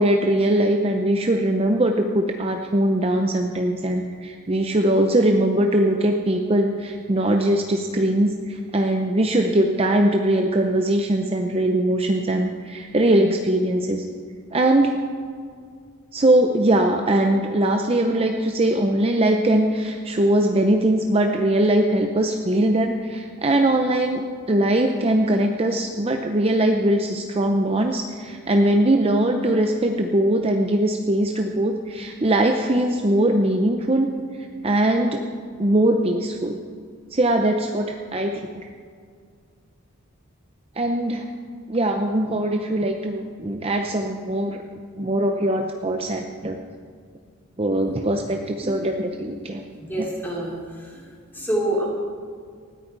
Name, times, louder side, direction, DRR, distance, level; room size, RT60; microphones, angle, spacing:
voice 1, 0.0-14.0 14.5-15.0 16.1-34.1 34.6-35.2 35.6-36.6 37.1-38.7 40.8-41.3 41.7-44.6 45.0-46.6 47.6-49.6 50.0-50.1, right 1 dB, 25° right, 4 dB, 0.7 m, -21 dB
voice 2, 49.8-51.1 51.3-51.9, right 1 dB, 10° left, -4 dB, 3.7 m, -27 dB
19.5 x 14.0 x 4.7 m, 2.1 s
head